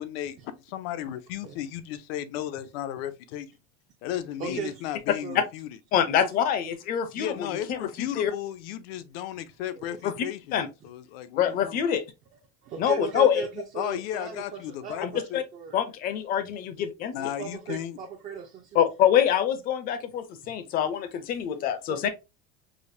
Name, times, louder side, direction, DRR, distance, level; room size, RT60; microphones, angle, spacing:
voice 1, 0.0-3.5 4.0-5.7 7.1-11.9 13.7-15.4 17.1-18.0, left 11 dB, 75° left, 0.6 m, -35 dB
voice 2, 4.4-4.8 5.2-5.5 6.2-6.3 9.7-10.0 12.6-15.8 17.2-18.9 21.9-22.1, right 7 dB, 25° right, 0.4 m, -37 dB
voice 3, 5.9-8.3 10.0-10.1 10.5-10.7 11.4-12.0 12.8-13.4 15.0-15.4 15.7-17.1 18.8-22.1, left 9 dB, 30° left, 0.5 m, -25 dB
5.0 x 2.1 x 2.6 m
cardioid pair, 175°, 30 cm